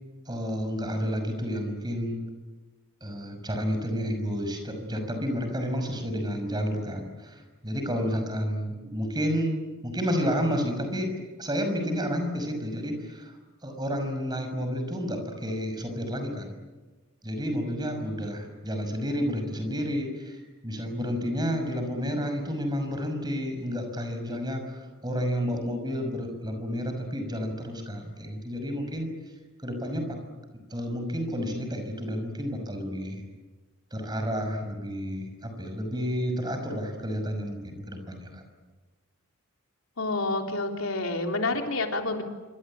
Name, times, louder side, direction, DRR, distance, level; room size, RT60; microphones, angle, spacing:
voice 1, 0.3-2.2 3.0-11.1 11.4-13.4 13.6-16.5 17.2-29.1 29.6-30.2 30.7-33.2 33.9-38.4, equal, 20° right, 5 dB, 6.0 m, -30 dB
voice 2, 40.0-42.2, left 2 dB, 80° left, 3 dB, 3.6 m, -28 dB
26.5 x 25.0 x 8.8 m, 1.2 s
head